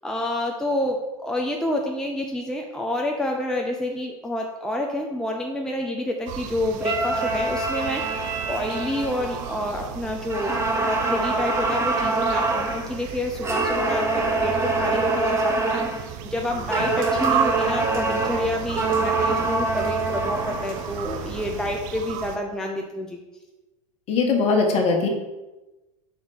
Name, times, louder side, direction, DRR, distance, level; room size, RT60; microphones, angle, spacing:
voice 1, 0.0-23.2, left 1 dB, 5° left, 1 dB, 0.6 m, -28 dB
sound 1, 6.3-22.4, right 9 dB, 45° right, 0.6 m, -34 dB
sound 2, 6.8-9.9 10.3-12.9 13.4-16.1 16.7-20.9, right 3 dB, 15° right, 1.1 m, -25 dB
Rain, 16.5-21.7, right 3 dB, 80° right, 1.6 m, -39 dB
voice 2, 24.1-25.1, left 4 dB, 40° left, 2 dB, 1.4 m, -20 dB
4.3 x 4.1 x 5.5 m, 1.1 s
hypercardioid pair, 95°, 17 cm